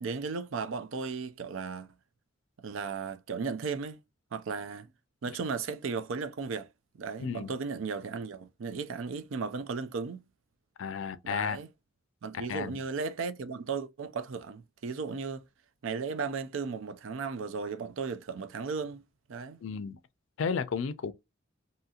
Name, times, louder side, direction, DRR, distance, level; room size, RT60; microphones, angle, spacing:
voice 1, 0.0-1.9 2.6-4.0 4.3-4.9 5.2-6.7 7.0-10.2 11.2-11.7 12.2-15.4 15.8-19.0 19.3-19.6, right 5 dB, 75° right, 0.4 m, -35 dB
voice 2, 7.2-7.5 10.8-11.6 12.3-12.7 19.6-20.0 20.4-21.1, left 6 dB, 75° left, 0.4 m, -33 dB
2.8 x 2.7 x 2.4 m
head